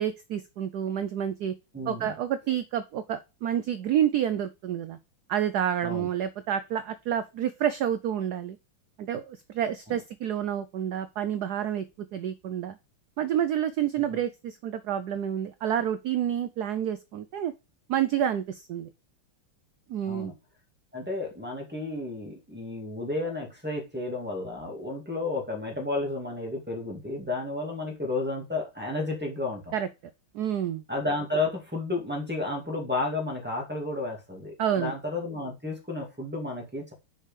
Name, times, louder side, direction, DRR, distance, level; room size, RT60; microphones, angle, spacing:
voice 1, 0.0-1.5 1.9-5.0 5.3-8.6 9.0-12.8 13.2-17.5 17.9-18.9 19.9-20.3 29.7-29.9 30.3-30.8 34.6-34.9, right 10 dB, 80° right, 12 dB, 0.8 m, -29 dB
voice 2, 1.7-2.1 5.8-6.1 9.9-10.0 14.1-14.2 20.0-20.3 20.9-29.7 30.9-36.9, left 2 dB, 5° right, 1 dB, 2.1 m, -32 dB
6.5 x 4.9 x 5.1 m, 0.27 s
omnidirectional pair, 2.3 m